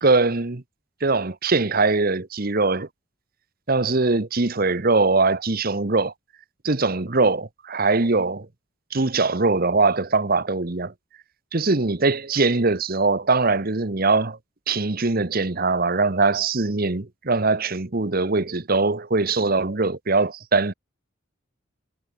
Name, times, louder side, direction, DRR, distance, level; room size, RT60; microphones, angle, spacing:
voice 1, 0.0-0.6 1.0-2.9 3.7-6.1 6.6-8.5 8.9-10.9 11.5-14.4 14.7-20.7, right 3 dB, 45° right, 1.1 m, -21 dB
head